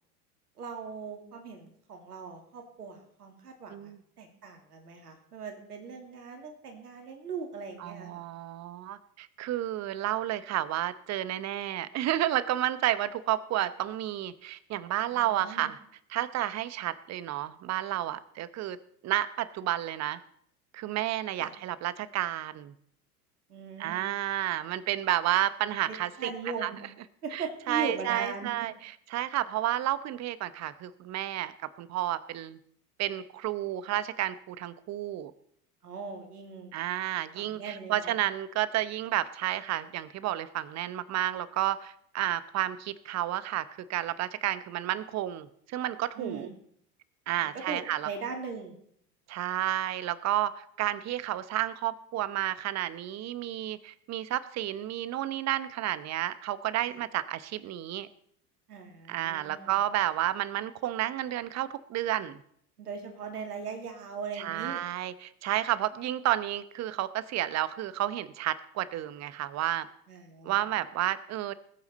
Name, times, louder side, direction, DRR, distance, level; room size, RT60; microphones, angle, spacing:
voice 1, 0.6-3.9 4.2-8.2 15.1-15.7 21.4-21.5 23.5-24.1 25.9-26.8 27.2-28.7 35.8-36.7 37.4-38.1 46.2-46.5 47.4-48.7 56.9-57.0 58.7-59.7 62.8-64.8 70.1-70.6, right 5 dB, 85° right, 4 dB, 2.6 m, -39 dB
voice 2, 7.8-15.8 16.1-18.8 19.0-20.2 20.7-22.7 23.8-26.3 26.6-26.7 27.3-32.6 33.0-35.3 36.7-46.5 47.3-48.1 49.3-58.1 59.1-62.4 64.4-69.9 70.4-71.5, right 13 dB, 35° right, 16 dB, 0.9 m, -31 dB
20.0 x 8.6 x 4.1 m, 0.68 s
hypercardioid pair, 90°, 45 cm